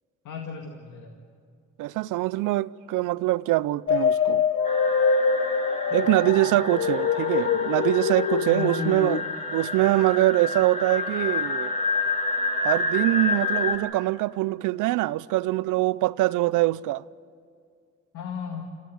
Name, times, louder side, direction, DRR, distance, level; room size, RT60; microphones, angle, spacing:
voice 1, 0.2-1.2 5.9-6.6 8.4-9.0 18.1-18.6, left 6 dB, 80° left, 2.1 m, -35 dB
voice 2, 1.8-4.4 5.9-9.2 9.5-11.7 12.6-17.0, right 17 dB, 90° right, 0.6 m, -23 dB
sound 1, 3.9-9.2, left 6 dB, 45° left, 0.9 m, -24 dB
sound 2, 4.6-13.8, left 3 dB, 25° left, 2.9 m, -29 dB
27.0 x 15.0 x 9.3 m
cardioid pair, 90°, 30 cm